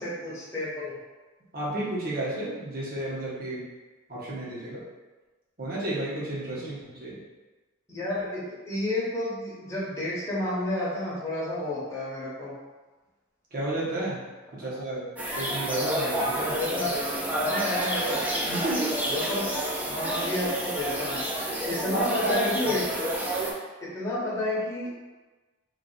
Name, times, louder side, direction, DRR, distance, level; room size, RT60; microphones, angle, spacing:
voice 1, 0.0-1.0 6.6-6.7 7.9-12.5 14.6-14.8 16.5-16.9 17.3-18.2 19.1-19.4 19.9-21.2 21.7-22.8 23.8-24.9, left 1 dB, 15° left, -9 dB, 0.9 m, -30 dB
voice 2, 1.5-3.6 4.1-4.8 5.6-7.2 13.5-14.2 14.5-15.1 15.4-16.6 18.5-19.0 21.9-22.5, right 1 dB, 45° right, -7 dB, 1.0 m, -31 dB
sound 1, 15.2-23.5, right 1 dB, 10° right, 0.5 m, -29 dB
3.2 x 2.4 x 3.9 m, 1.2 s
head